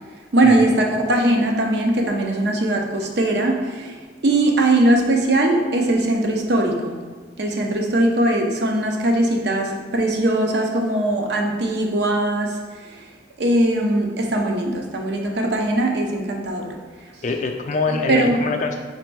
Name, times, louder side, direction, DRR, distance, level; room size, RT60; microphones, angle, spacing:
voice 1, 0.3-7.0 7.4-12.6 13.4-16.8 18.1-18.4, right 1 dB, 60° right, 2 dB, 0.6 m, -20 dB
voice 2, 17.2-18.8, left 4 dB, 40° left, 4 dB, 0.4 m, -24 dB
4.3 x 2.6 x 4.5 m, 1.5 s
head